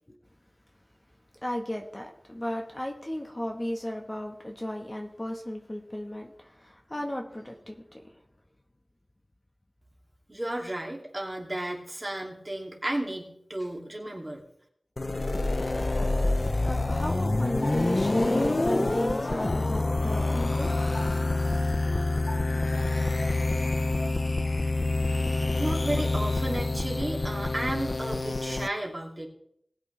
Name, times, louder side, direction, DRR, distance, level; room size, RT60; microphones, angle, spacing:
voice 1, 1.4-8.2 16.6-20.7, equal, 25° left, 2 dB, 1.4 m, -34 dB
voice 2, 10.3-14.4 25.6-29.3, right 1 dB, 30° right, -1 dB, 2.6 m, -33 dB
sound 1, 15.0-28.7, left 2 dB, 50° left, 0.5 m, -27 dB
Piano, 17.6-24.4, left 1 dB, 70° left, 4.3 m, -40 dB
19.5 x 8.3 x 3.4 m, 0.72 s
wide cardioid pair, 60°, 0 cm